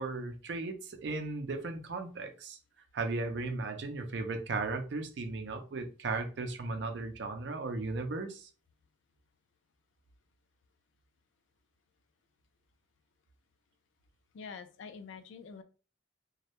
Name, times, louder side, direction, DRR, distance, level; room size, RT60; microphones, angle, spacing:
voice 1, 0.0-2.6 2.9-8.5, right 3 dB, 60° right, 0.4 m, -36 dB
voice 2, 14.3-15.6, left 5 dB, 75° left, 0.3 m, -46 dB
2.2 x 2.0 x 2.8 m
head